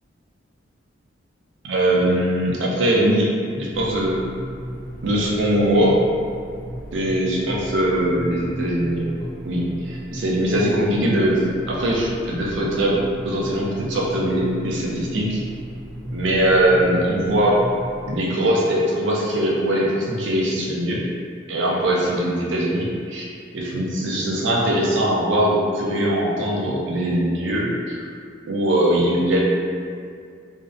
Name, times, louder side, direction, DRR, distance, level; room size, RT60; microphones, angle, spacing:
voice 1, 1.6-3.3 3.5-4.2 5.0-6.0 6.9-9.0 9.4-13.0 13.3-15.4 16.1-17.6 18.1-21.0 21.5-23.2 23.5-28.0 28.5-29.4, right 1 dB, 65° right, -3 dB, 0.5 m, -21 dB
sound 1, 3.7-18.2, right 1 dB, 15° left, 0.5 m, -35 dB
2.5 x 2.1 x 2.5 m, 2.2 s
head